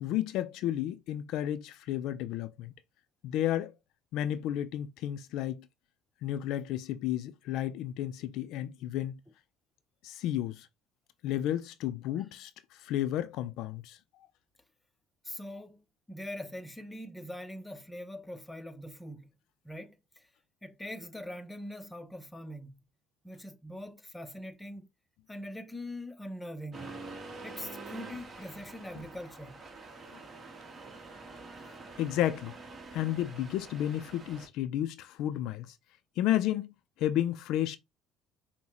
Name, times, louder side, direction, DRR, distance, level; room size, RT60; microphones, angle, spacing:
voice 1, 0.0-2.7 3.2-3.7 4.1-5.6 6.2-9.2 10.0-10.7 11.2-12.5 12.8-14.0 32.0-32.5 32.9-35.7 36.2-36.7 37.0-37.8, left 12 dB, 70° left, 0.4 m, -32 dB
voice 2, 15.2-19.3 19.6-20.3 20.6-22.8 23.2-24.9 25.3-26.9 27.4-29.6, left 1 dB, 10° left, 0.7 m, -42 dB
Accelerating revving vroom, 26.7-34.5, right 3 dB, 30° right, 1.2 m, -46 dB
5.4 x 2.1 x 3.0 m
supercardioid pair, 95°, 0 cm